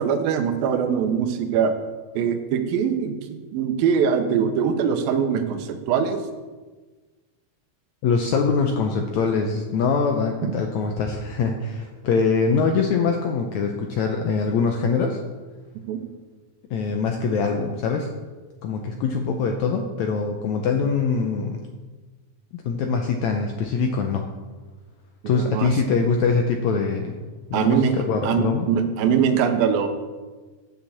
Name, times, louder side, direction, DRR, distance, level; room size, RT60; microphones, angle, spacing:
voice 1, 0.0-1.7 2.1-6.2 10.4-10.5 15.9-16.0 25.2-25.7 27.5-27.9 28.2-29.9, right 7 dB, 85° right, 7 dB, 2.6 m, -22 dB
voice 2, 8.0-15.2 16.7-18.1 18.6-21.6 22.5-24.3 25.3-27.2 27.5-28.7, left 5 dB, 80° left, 3 dB, 1.7 m, -23 dB
8.0 x 7.1 x 7.1 m, 1.3 s
omnidirectional pair, 4.1 m